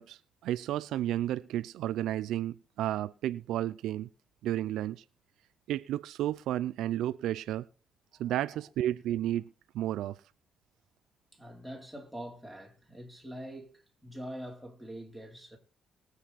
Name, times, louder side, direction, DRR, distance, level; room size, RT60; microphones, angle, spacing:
voice 1, 0.0-4.1 4.4-5.0 5.7-7.7 8.2-9.5 9.7-10.2, right 12 dB, 80° right, 0.5 m, -32 dB
voice 2, 8.1-8.7 11.3-15.6, equal, ahead, 3.4 m, -45 dB
21.0 x 7.8 x 4.1 m
cardioid pair, 130°, 0 cm